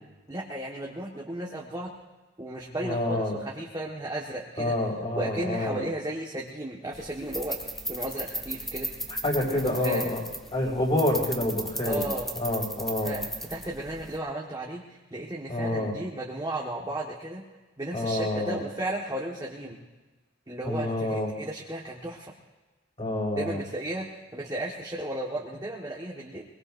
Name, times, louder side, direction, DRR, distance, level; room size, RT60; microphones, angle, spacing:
voice 1, 0.3-1.9 2.4-4.7 5.1-7.6 7.9-8.9 9.5-10.2 11.8-12.3 13.0-13.2 13.5-17.4 17.8-19.8 20.5-22.3 23.3-26.4, right 1 dB, 20° right, -3 dB, 1.6 m, -34 dB
voice 2, 2.8-3.4 4.6-5.8 9.2-10.2 10.5-12.1 12.4-13.2 15.5-15.9 17.9-18.6 20.6-21.3 23.0-23.6, left 1 dB, 30° left, -3 dB, 5.9 m, -28 dB
sound 1, 6.9-14.2, equal, ahead, 1.4 m, -36 dB
23.5 x 23.0 x 2.7 m, 1.2 s
head